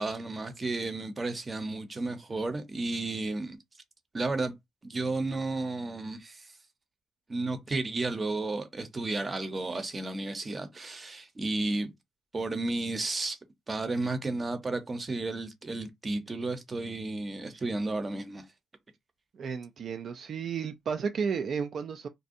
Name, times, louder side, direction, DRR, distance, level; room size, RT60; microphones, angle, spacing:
voice 1, 0.0-3.6 4.1-4.5 4.8-6.5 7.3-11.9 12.3-13.4 13.7-18.4, right 2 dB, 30° right, 0.7 m, -33 dB
voice 2, 19.3-22.1, right 6 dB, 55° right, 0.3 m, -33 dB
2.5 x 2.2 x 2.6 m
cardioid pair, 90°, 0 cm